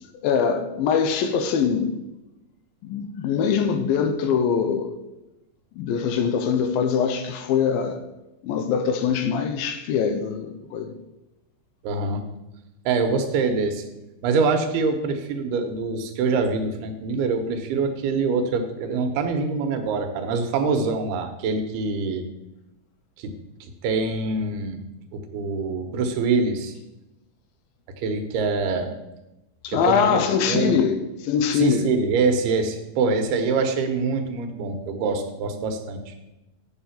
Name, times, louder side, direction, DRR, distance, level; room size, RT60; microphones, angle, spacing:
voice 1, 0.1-2.0 2.8-5.0 5.8-8.0 8.4-10.9 29.6-31.9, left 7 dB, 80° left, 2.4 m, -23 dB
voice 2, 11.8-12.2 12.9-13.8 14.2-22.2 23.2-23.3 23.8-24.8 25.1-26.7 28.0-29.0 29.7-30.2 30.5-30.8 31.5-36.2, right 4 dB, 80° right, 3.0 m, -24 dB
8.0 x 7.3 x 5.8 m
omnidirectional pair, 4.5 m